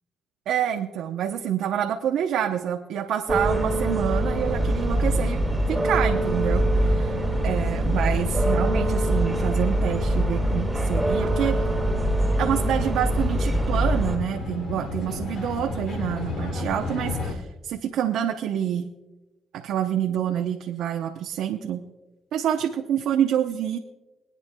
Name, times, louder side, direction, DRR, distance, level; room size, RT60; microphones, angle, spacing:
voice 1, 0.5-5.4 5.7-7.2 7.4-11.6 12.4-18.9 19.5-21.9 22.3-23.8, right 9 dB, 80° right, 2 dB, 0.7 m, -27 dB
sound 1, 3.3-14.2, right 1 dB, 5° right, 3.1 m, -23 dB
sound 2, 5.9-17.3, left 3 dB, 65° left, 2.6 m, -34 dB
24.0 x 9.6 x 2.2 m, 1.1 s
cardioid pair, 85°, 0 cm